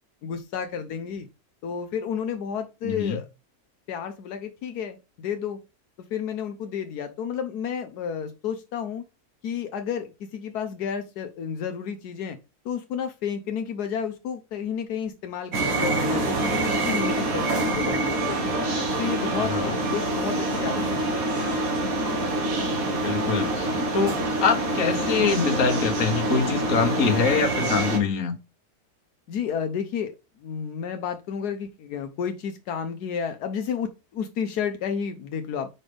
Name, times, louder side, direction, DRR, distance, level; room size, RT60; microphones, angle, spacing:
voice 1, 0.2-1.3 1.6-3.2 3.9-5.6 6.1-9.0 9.4-12.4 12.6-15.5 15.8-18.4 19.0-20.8 21.3-21.4 29.3-30.1 30.4-35.7, left 7 dB, 80° left, 1.3 m, -31 dB
voice 2, 2.8-3.2 19.4-19.8 23.0-28.3, left 5 dB, 55° left, 1.6 m, -24 dB
sound 1, 15.5-28.0, right 2 dB, 60° right, 1.8 m, -26 dB
5.7 x 5.3 x 3.3 m
omnidirectional pair, 1.7 m